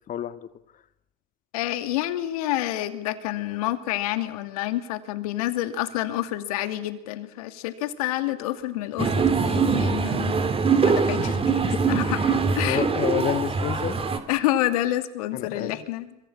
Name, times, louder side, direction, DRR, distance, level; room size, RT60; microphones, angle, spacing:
voice 1, 0.1-0.5 11.2-11.8 12.1-12.4 12.6-14.0 15.3-15.9, left 10 dB, 45° left, 11 dB, 1.8 m, -30 dB
voice 2, 1.5-10.4 10.8-12.8 14.3-16.2, left 14 dB, 80° left, 9 dB, 2.5 m, -28 dB
sound 1, 9.0-14.2, right 5 dB, 30° right, 3.5 m, -23 dB
26.0 x 24.0 x 8.7 m, 0.83 s
hypercardioid pair, 75°, 19 cm